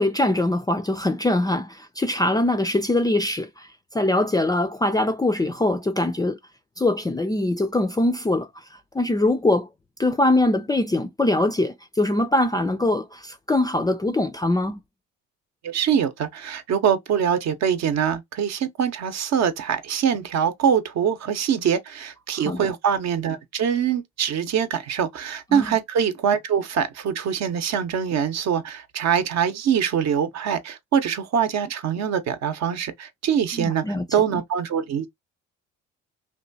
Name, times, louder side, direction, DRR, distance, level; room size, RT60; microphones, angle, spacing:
voice 1, 0.0-3.7 3.9-6.4 6.8-8.5 8.9-9.7 10.0-14.8 22.5-22.7 25.5-25.7 33.5-34.0 34.3-34.4, left 1 dB, 15° left, 0.4 m, -22 dB
voice 2, 15.6-33.8 34.1-35.1, right 8 dB, 55° right, 0.8 m, -24 dB
2.9 x 2.3 x 2.6 m
supercardioid pair, 70°, 31 cm